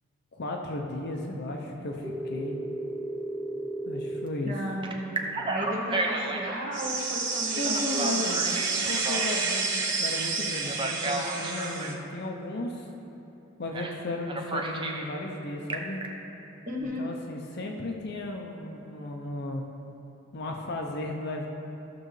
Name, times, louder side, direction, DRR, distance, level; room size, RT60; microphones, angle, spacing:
voice 1, 0.3-2.6 3.8-4.5 7.6-8.4 8.9-12.9 13.6-16.1 17.0-19.6 20.3-21.5, left 2 dB, 55° left, 1 dB, 0.6 m, -35 dB
Telephone, 2.0-4.3 4.8-6.6 7.6-9.8 10.6-12.0 13.7-14.0 14.3-15.1 15.5-16.1, right 2 dB, 25° right, 0.7 m, -33 dB
voice 2, 4.4-8.8 16.7-17.1, equal, 45° right, -2 dB, 1.4 m, -35 dB
sound 1, 6.7-12.0, right 4 dB, 60° right, 1.1 m, -29 dB
14.5 x 6.5 x 3.2 m, 2.9 s
head